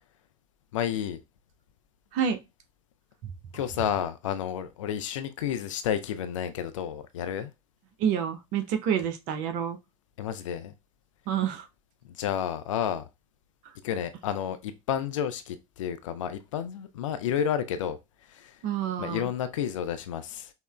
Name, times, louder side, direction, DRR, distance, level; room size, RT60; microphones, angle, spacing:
voice 1, 0.7-1.2 3.5-7.5 10.2-10.7 12.2-13.0 13.8-18.0 18.3-18.5 19.0-20.5, left 9 dB, 65° left, 0.4 m, -31 dB
voice 2, 8.0-9.8 11.3-11.7 18.6-19.3, right 8 dB, 45° right, 0.6 m, -28 dB
5.5 x 2.1 x 2.2 m
figure-of-eight pair, 75°, 18 cm